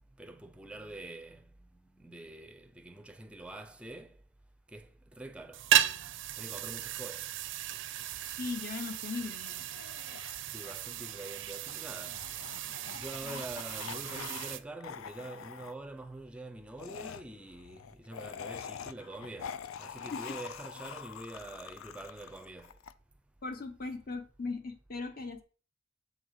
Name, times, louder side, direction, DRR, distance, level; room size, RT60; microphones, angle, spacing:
voice 1, 0.2-1.4 2.0-4.1 4.7-5.6 6.4-7.2 10.5-12.2 12.9-19.5 19.8-22.7, right 2 dB, 5° right, 0.5 m, -45 dB
sound 1, 5.5-14.6, right 11 dB, 65° right, 0.4 m, -35 dB
voice 2, 8.2-9.6 13.2-13.4 20.1-20.2 23.4-25.4, left 4 dB, 45° left, 0.8 m, -38 dB
sound 2, 9.5-14.6 14.8-15.7 16.8-22.9, left 7 dB, 80° left, 0.4 m, -45 dB
7.3 x 3.8 x 4.8 m
head